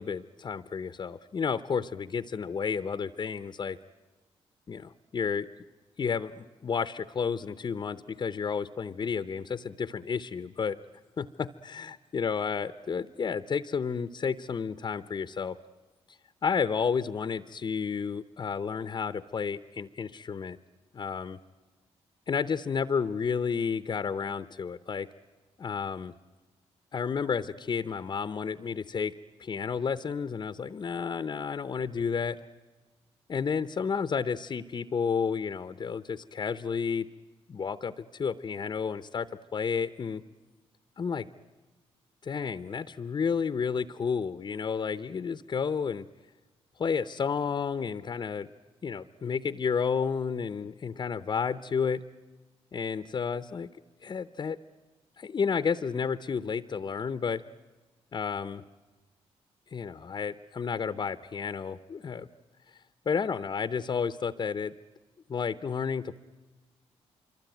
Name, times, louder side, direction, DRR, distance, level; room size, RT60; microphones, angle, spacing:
voice 1, 0.0-3.8 4.7-5.5 6.0-10.8 11.2-15.6 16.1-20.6 20.9-21.4 22.3-25.1 25.6-26.1 26.9-29.1 29.4-32.4 33.3-37.1 37.5-40.2 41.0-41.3 42.2-46.1 46.8-48.5 48.8-52.0 52.7-53.7 54.0-54.6 55.2-57.4 58.1-58.6 59.7-62.3 63.1-64.7 65.3-66.2, left 6 dB, 40° left, 12 dB, 0.8 m, -31 dB
25.5 x 24.0 x 9.2 m, 1.2 s
cardioid pair, 85°, 11 cm